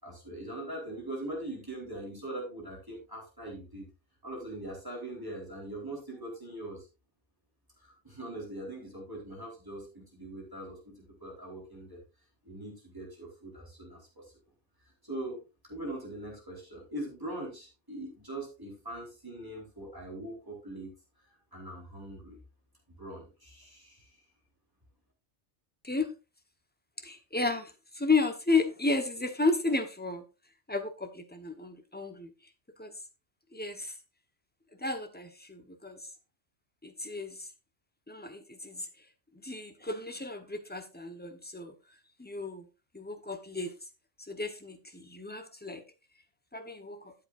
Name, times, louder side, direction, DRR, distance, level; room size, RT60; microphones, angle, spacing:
voice 1, 0.0-3.9 4.2-6.9 7.8-12.0 12.4-14.3 15.0-20.9 21.5-22.4 23.0-24.2, right 1 dB, 15° right, 3.9 m, -41 dB
voice 2, 27.0-30.2 30.7-32.3 32.8-32.9 33.5-33.9 34.8-36.1 36.8-37.5 38.1-38.9 39.4-41.7 42.2-42.6 42.9-43.7 44.2-45.8 46.5-47.1, left 3 dB, 10° left, 1.1 m, -33 dB
12.5 x 8.0 x 2.6 m
omnidirectional pair, 1.2 m